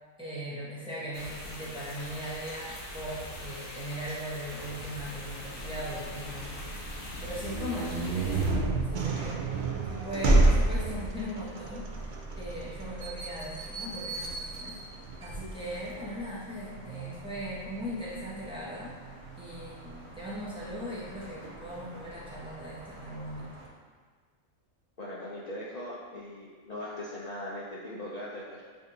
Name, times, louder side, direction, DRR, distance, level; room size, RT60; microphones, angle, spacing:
voice 1, 0.2-9.4 9.9-14.8 15.2-19.0 19.4-23.5, equal, 5° right, -8 dB, 0.7 m, -39 dB
sound 1, 1.1-8.5, left 1 dB, 50° left, 0.8 m, -41 dB
sound 2, 4.6-23.7, right 2 dB, 60° right, 1.0 m, -47 dB
sound 3, 7.3-16.0, right 2 dB, 80° right, 0.4 m, -29 dB
voice 2, 25.0-28.6, left 1 dB, 65° left, -7 dB, 0.4 m, -40 dB
6.8 x 2.7 x 2.7 m, 1.5 s
omnidirectional pair, 1.4 m